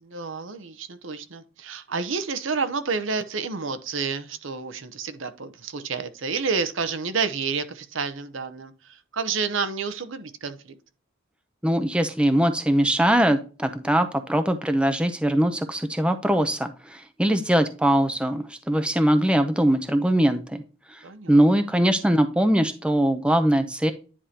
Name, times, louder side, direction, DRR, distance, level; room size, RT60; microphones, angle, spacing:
voice 1, 0.0-10.7 21.0-21.4, right 5 dB, 65° right, 0.8 m, -30 dB
voice 2, 11.6-20.6 20.9-21.0 21.3-23.9, right 1 dB, 5° right, 0.6 m, -21 dB
10.0 x 4.9 x 2.8 m
head